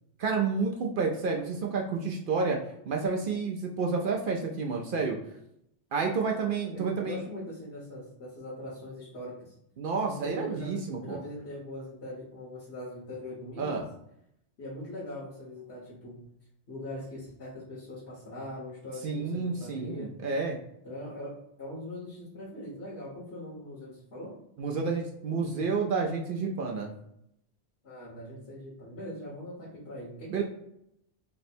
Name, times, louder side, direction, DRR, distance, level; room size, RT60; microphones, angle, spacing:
voice 1, 0.2-2.6 2.9-5.2 5.9-7.2 9.8-11.2 13.6-13.9 19.0-20.6 24.6-26.9 30.3-30.4, right 4 dB, 60° right, 1 dB, 0.6 m, -30 dB
voice 2, 6.7-9.5 10.0-13.9 14.6-16.2 16.7-20.1 20.8-24.4 27.8-30.4, left 1 dB, 65° left, -6 dB, 1.3 m, -41 dB
3.3 x 2.0 x 4.2 m, 0.77 s
omnidirectional pair, 1.2 m